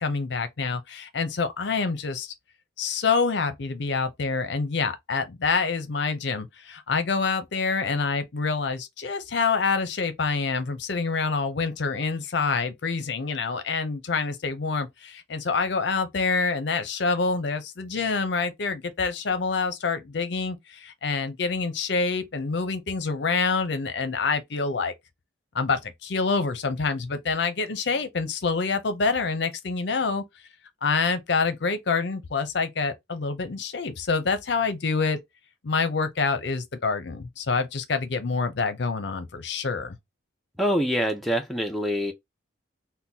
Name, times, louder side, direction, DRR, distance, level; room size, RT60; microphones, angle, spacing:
voice 1, 0.0-2.3 2.8-24.9 25.5-30.2 30.8-35.2 35.6-40.0, left 4 dB, 65° left, 0.6 m, -26 dB
voice 2, 40.6-42.1, equal, ahead, 0.4 m, -25 dB
3.8 x 2.2 x 2.7 m
head